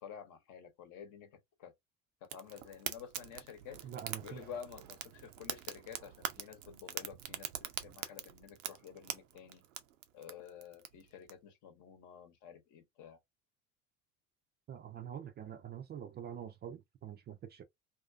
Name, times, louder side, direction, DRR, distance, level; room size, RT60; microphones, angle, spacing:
voice 1, 0.0-1.7 2.2-3.9 4.2-7.5 7.8-9.6 10.1-13.2, left 8 dB, 55° left, 0.9 m, -50 dB
Fire, 2.3-11.3, right 10 dB, 85° right, 0.5 m, -44 dB
voice 2, 3.8-4.4 14.7-17.6, right 9 dB, 30° right, 0.4 m, -45 dB
2.5 x 2.4 x 2.5 m
hypercardioid pair, 65°, 38 cm